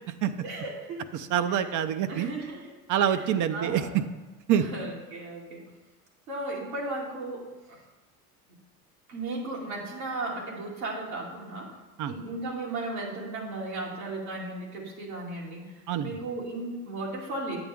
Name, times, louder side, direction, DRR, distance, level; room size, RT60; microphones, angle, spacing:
voice 1, 0.4-1.0 1.6-1.7 2.1-2.7 3.1-3.2 3.5-4.0 4.5-5.7 6.3-7.8 9.1-11.7 12.1-15.7 16.0-17.6, right 2 dB, 80° right, -4 dB, 2.7 m, -35 dB
voice 2, 1.1-2.3 2.9-4.0 4.5-4.6 12.0-12.1 15.9-16.1, right 9 dB, 45° right, 11 dB, 0.7 m, -26 dB
8.9 x 8.3 x 3.6 m, 1.1 s
hypercardioid pair, 80°, 43 cm